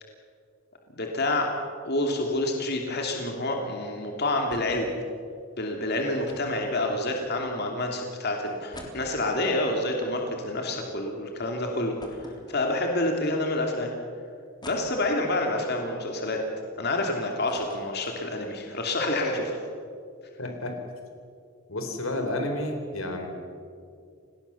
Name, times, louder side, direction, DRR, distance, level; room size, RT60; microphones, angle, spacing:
voice 1, 0.9-1.6 1.8-4.9 5.6-12.2 12.5-13.9 14.6-16.4 16.8-19.6, left 2 dB, 55° left, 2 dB, 2.8 m, -28 dB
sound 1, 4.5-4.9 5.2-5.3 6.3-7.5 8.1-8.2 8.5-10.9 11.3-11.4 12.0-13.1 13.7-13.8 14.6-15.5 16.0-17.0 17.2-18.6 18.9-19.0 19.3-19.5, left 1 dB, 20° left, 3.7 m, -46 dB
voice 2, 20.4-20.8 21.7-23.3, left 1 dB, 90° left, 5 dB, 4.0 m, -30 dB
29.5 x 19.0 x 7.0 m, 2.3 s
head